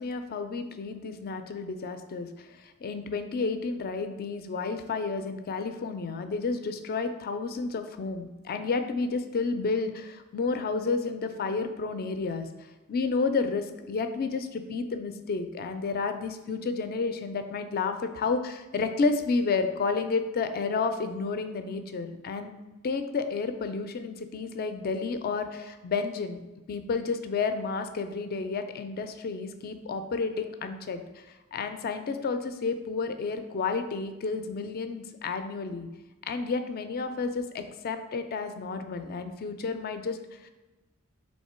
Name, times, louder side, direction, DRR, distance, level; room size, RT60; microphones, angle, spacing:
voice 1, 0.0-35.9 36.3-40.5, left 4 dB, 45° left, 8 dB, 0.4 m, -31 dB
3.6 x 3.2 x 4.2 m, 1.1 s
head